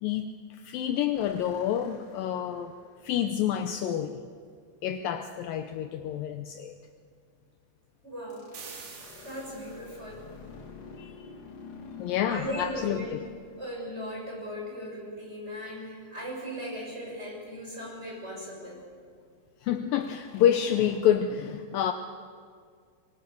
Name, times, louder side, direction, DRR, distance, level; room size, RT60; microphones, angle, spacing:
voice 1, 0.0-2.7 3.0-4.2 4.8-6.7 11.0-11.3 12.0-13.2 19.6-21.9, left 10 dB, 85° left, 7 dB, 2.0 m, -28 dB
sound 1, 1.1-3.3 8.3-14.6 20.0-21.0, left 4 dB, 50° left, 3.5 m, -49 dB
voice 2, 8.0-8.5 9.2-10.3 12.3-13.2 13.6-18.8, equal, 15° right, -2 dB, 7.0 m, -38 dB
sound 2, 8.5-10.1, right 5 dB, 70° right, 5.3 m, -46 dB
24.0 x 23.0 x 7.0 m, 2.1 s
omnidirectional pair, 5.1 m